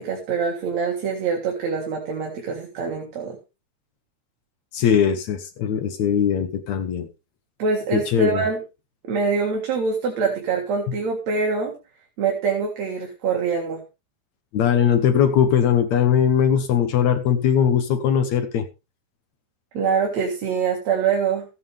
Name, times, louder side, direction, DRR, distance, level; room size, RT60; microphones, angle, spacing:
voice 1, 0.0-3.4 7.6-8.6 9.0-11.8 12.2-13.8 19.7-21.4, right 5 dB, 60° right, 1 dB, 3.1 m, -24 dB
voice 2, 4.7-7.1 7.9-8.4 14.5-18.7, left 8 dB, 70° left, 9 dB, 2.2 m, -20 dB
15.5 x 9.2 x 3.4 m, 0.28 s
omnidirectional pair, 3.5 m